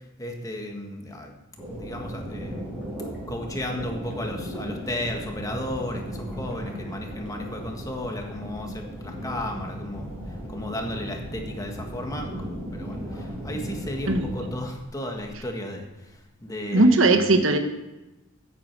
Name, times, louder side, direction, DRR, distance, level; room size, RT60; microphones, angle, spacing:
voice 1, 0.2-1.3 1.7-2.7 3.3-17.3, left 1 dB, 15° left, 2 dB, 1.6 m, -34 dB
Under the waterfall, 1.6-14.5, equal, 5° right, 4.9 m, -36 dB
voice 2, 16.7-17.6, right 2 dB, 75° right, 7 dB, 1.2 m, -18 dB
15.0 x 8.6 x 4.7 m, 1.0 s
head